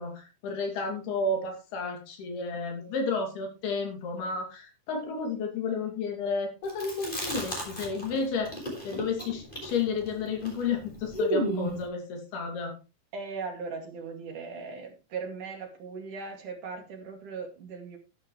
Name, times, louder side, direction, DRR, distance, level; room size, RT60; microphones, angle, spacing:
voice 1, 0.0-8.5 8.8-12.7, left 4 dB, 85° left, 3 dB, 4.7 m, -32 dB
Chewing mastication, 6.7-8.2 8.4-11.8, equal, 15° left, 4.5 m, -32 dB
voice 2, 13.1-18.0, right 5 dB, 60° right, 4 dB, 3.6 m, -38 dB
12.5 x 10.5 x 3.2 m, 0.31 s
omnidirectional pair, 4.4 m